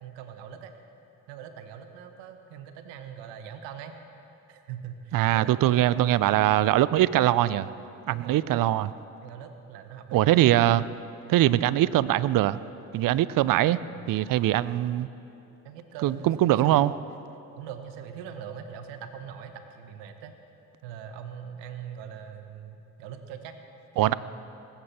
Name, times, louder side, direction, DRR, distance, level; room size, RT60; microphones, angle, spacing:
voice 1, 0.0-0.7 1.3-4.0 4.5-6.1 8.1-8.8 9.2-10.4 13.9-14.1 15.6-16.8 17.6-20.3 20.8-23.6 24.0-24.1, right 8 dB, 80° right, 7 dB, 1.1 m, -42 dB
voice 2, 5.1-7.7 8.1-8.9 10.1-10.8 11.3-12.6 12.9-13.8 14.1-15.1 16.0-16.9 24.0-24.1, right 14 dB, 50° right, 17 dB, 0.5 m, -22 dB
20.5 x 8.7 x 4.4 m, 2.8 s
hypercardioid pair, 50°, 42 cm